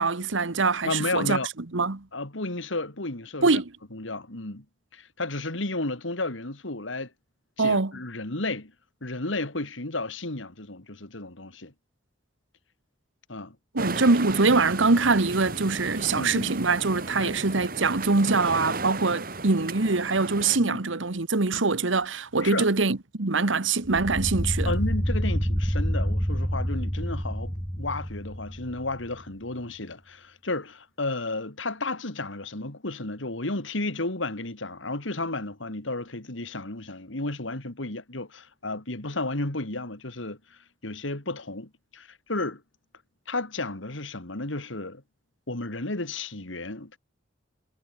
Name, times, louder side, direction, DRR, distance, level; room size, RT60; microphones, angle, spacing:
voice 1, 0.0-1.4 1.7-2.0 3.4-3.7 7.6-7.9 13.7-24.7, right 3 dB, 85° right, 1.4 m, -23 dB
voice 2, 0.8-1.5 2.1-3.6 3.9-4.6 4.9-7.1 7.6-8.7 9.0-11.7 13.3-13.6 16.2-16.5 17.2-17.3 20.6-20.8 22.4-22.7 24.6-42.6 43.3-45.0 45.5-47.0, left 2 dB, 85° left, 2.9 m, -33 dB
sound 1, 13.8-20.6, right 3 dB, 50° right, 3.1 m, -35 dB
sound 2, 23.8-29.1, equal, ahead, 1.6 m, -28 dB
head